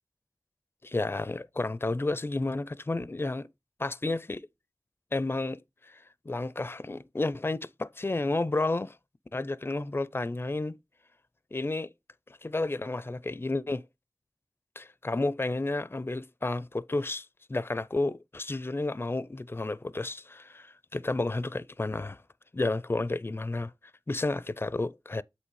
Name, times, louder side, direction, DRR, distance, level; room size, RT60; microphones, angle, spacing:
voice 1, 0.8-3.5 3.8-4.5 5.1-9.0 9.3-10.8 11.5-11.9 12.4-13.8 14.8-22.2 22.5-23.7 24.1-25.2, left 2 dB, 30° left, 0.4 m, -31 dB
8.2 x 3.1 x 4.6 m
wide cardioid pair, 50°, 7 cm